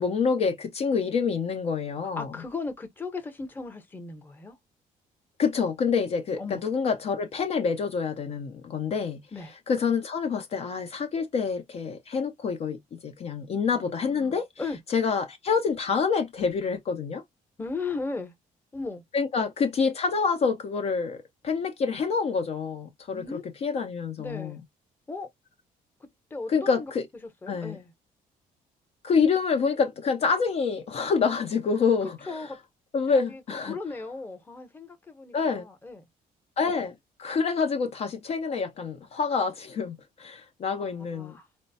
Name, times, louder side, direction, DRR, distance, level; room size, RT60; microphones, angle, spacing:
voice 1, 0.0-2.4 5.4-9.2 9.7-14.5 14.9-17.2 19.1-24.6 26.5-27.1 27.5-27.8 29.0-32.5 32.9-33.8 35.3-35.6 36.6-41.3, left 5 dB, 45° left, 0.6 m, -27 dB
voice 2, 2.2-4.6 6.4-6.6 9.3-9.5 13.7-14.8 17.6-18.3 18.7-19.0 23.1-23.4 24.2-24.6 25.1-25.3 26.3-26.9 27.4-27.9 32.3-32.6 33.1-33.4 33.7-36.1 40.7-40.8 41.1-41.5, left 3 dB, 15° left, 0.9 m, -36 dB
4.3 x 2.1 x 2.6 m
cardioid pair, 145°, 15 cm